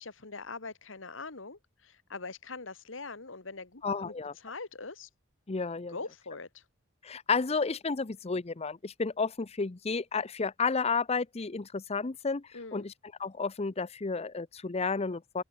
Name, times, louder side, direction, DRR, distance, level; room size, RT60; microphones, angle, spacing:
voice 1, 0.0-4.1 4.4-5.1 5.9-6.6 12.5-12.9, left 3 dB, 90° left, 2.1 m, -42 dB
voice 2, 3.8-4.3 5.5-6.0 7.0-12.9 13.2-15.4, left 4 dB, 35° left, 0.6 m, -32 dB
open air
head